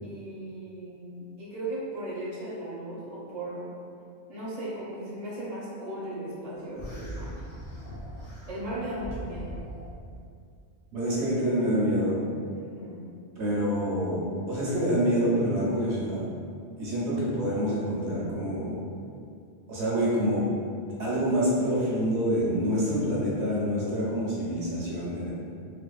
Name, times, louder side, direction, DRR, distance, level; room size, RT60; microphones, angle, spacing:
voice 1, 0.0-3.7 4.3-7.3 8.5-9.5 12.5-13.0, right 1 dB, 35° right, -9 dB, 0.7 m, -37 dB
sound 1, 6.7-10.2, right 1 dB, 50° left, 0.4 m, -40 dB
voice 2, 10.9-12.3 13.4-16.2 16.8-18.8 19.7-20.4 21.0-25.3, equal, 70° right, -7 dB, 0.9 m, -27 dB
2.6 x 2.2 x 2.2 m, 2.3 s
omnidirectional pair, 1.2 m